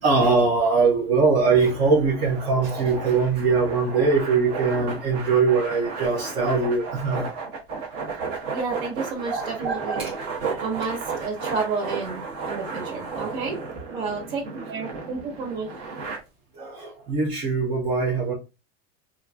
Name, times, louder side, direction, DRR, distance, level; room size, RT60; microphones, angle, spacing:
voice 1, 0.0-7.3 9.3-10.1 10.4-10.6 13.9-14.1 16.5-18.3, right 4 dB, 20° right, 0.3 m, -22 dB
sound 1, 1.5-16.2, right 4 dB, 35° right, 0.9 m, -34 dB
voice 2, 8.5-10.1 10.6-13.6 13.9-15.7, right 4 dB, 55° right, 1.4 m, -30 dB
4.3 x 2.5 x 2.2 m
supercardioid pair, 180°, 32 cm